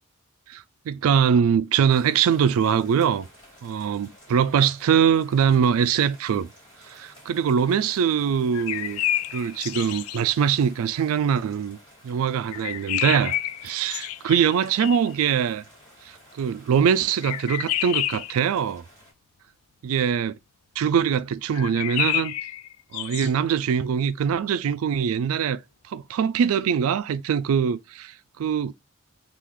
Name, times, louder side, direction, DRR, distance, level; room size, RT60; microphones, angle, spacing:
voice 1, 0.5-3.3 3.6-6.5 6.9-9.0 9.3-11.8 12.0-13.4 13.6-15.6 16.4-18.8 19.8-20.4 20.8-22.4 22.9-25.6 25.9-28.7, right 7 dB, 75° right, 0.3 m, -23 dB
sound 1, 1.9-19.1, equal, 20° left, 1.8 m, -52 dB
sound 2, 8.5-10.2 12.5-15.2 17.2-18.4 21.5-23.3, left 12 dB, 80° left, 0.3 m, -29 dB
3.7 x 2.4 x 3.0 m
head